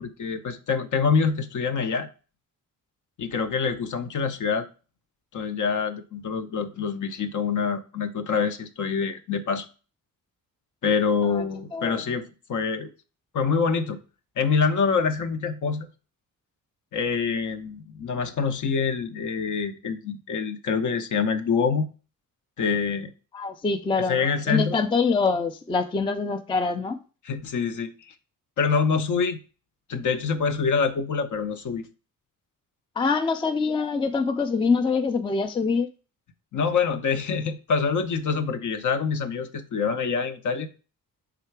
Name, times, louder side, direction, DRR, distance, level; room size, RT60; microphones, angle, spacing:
voice 1, 0.0-2.1 3.2-4.7 5.3-9.7 10.8-12.9 13.3-14.0 14.4-15.9 16.9-21.9 22.6-23.1 24.1-24.8 27.2-28.1 28.6-29.4 29.9-31.9 36.5-40.7, left 5 dB, 60° left, 0.7 m, -26 dB
voice 2, 11.7-12.0 23.3-24.2 24.5-27.0 33.0-35.9, left 4 dB, 15° left, 0.3 m, -24 dB
5.7 x 3.7 x 4.5 m
wide cardioid pair, 170°, 34 cm